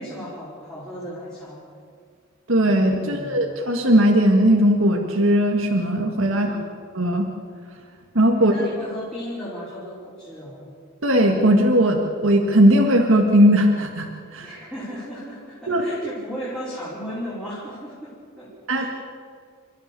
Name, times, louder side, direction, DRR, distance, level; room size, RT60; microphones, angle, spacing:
voice 1, 0.0-1.6 3.0-3.4 6.3-6.8 8.3-10.7 14.4-18.9, equal, 5° left, -10 dB, 4.8 m, -35 dB
voice 2, 2.5-6.6 6.9-7.3 8.2-8.5 11.0-14.6 15.7-15.8 18.7-18.8, equal, 70° right, 2 dB, 1.8 m, -18 dB
29.5 x 13.5 x 6.9 m, 2.1 s
head